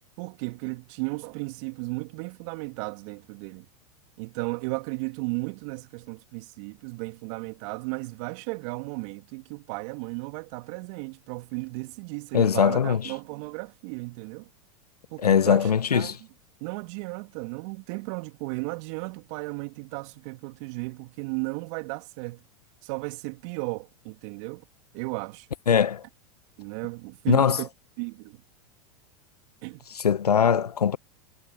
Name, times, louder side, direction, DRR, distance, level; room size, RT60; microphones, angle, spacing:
voice 1, 0.2-3.6 4.2-14.5 15.1-16.1 16.6-22.4 22.8-24.6 24.9-25.5 26.6-27.7 28.0-28.4 29.6-29.9, right 29 dB, 55° right, 2.9 m, -35 dB
voice 2, 12.3-13.1 15.2-16.2 25.7-26.0 27.3-27.6 29.9-31.0, left 7 dB, 90° left, 1.1 m, -21 dB
hypercardioid pair, 100°, 19 cm